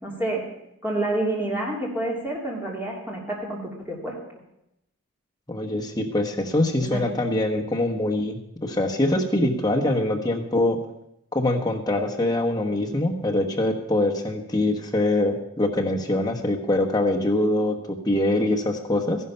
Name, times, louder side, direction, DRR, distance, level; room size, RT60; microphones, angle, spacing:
voice 1, 0.0-0.4 0.8-4.1 6.8-7.1, right 1 dB, 10° right, -3 dB, 3.0 m, -28 dB
voice 2, 5.5-10.8 11.3-19.2, left 1 dB, 20° left, 1 dB, 1.2 m, -24 dB
14.5 x 11.0 x 5.6 m, 0.82 s
head